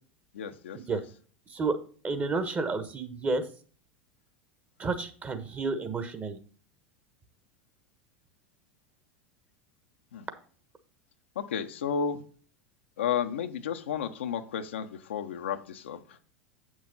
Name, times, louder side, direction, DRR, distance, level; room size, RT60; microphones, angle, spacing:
voice 1, 0.3-1.0 10.1-10.3 11.5-12.2 13.0-16.0, left 7 dB, 70° left, 7 dB, 0.8 m, -32 dB
voice 2, 2.0-3.4 4.8-6.4, right 3 dB, 25° right, 9 dB, 1.4 m, -30 dB
8.3 x 6.3 x 4.0 m, 0.42 s
figure-of-eight pair, 80°, 6 cm